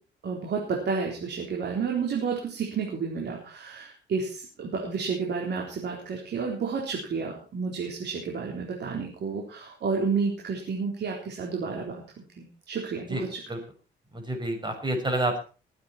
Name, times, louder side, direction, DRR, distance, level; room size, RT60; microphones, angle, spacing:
voice 1, 0.2-12.0 12.4-13.4, right 5 dB, 60° right, -1 dB, 4.1 m, -31 dB
voice 2, 14.1-15.4, right 1 dB, 20° right, 5 dB, 5.8 m, -28 dB
20.5 x 9.5 x 4.4 m, 0.36 s
cardioid pair, 90°, 20 cm